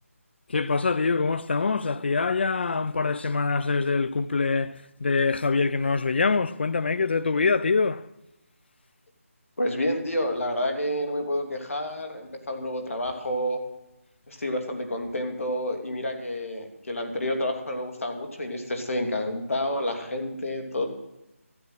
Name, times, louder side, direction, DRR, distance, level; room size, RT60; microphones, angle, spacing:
voice 1, 0.5-8.1, left 4 dB, 50° left, 0.4 m, -24 dB
voice 2, 9.6-13.6 14.3-20.9, left 1 dB, 70° left, 2.8 m, -29 dB
13.0 x 8.7 x 7.7 m
figure-of-eight pair, 165°, 8 cm